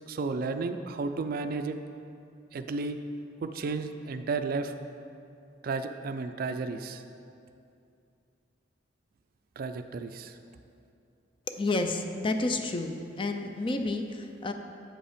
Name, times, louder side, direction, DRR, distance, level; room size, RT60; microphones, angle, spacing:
voice 1, 0.1-1.8 2.5-3.0 3.4-4.7 5.6-7.0 9.6-10.4, right 4 dB, 50° right, 9 dB, 0.3 m, -33 dB
voice 2, 11.6-14.5, left 2 dB, 25° left, 6 dB, 0.4 m, -30 dB
7.5 x 5.3 x 5.0 m, 2.5 s
head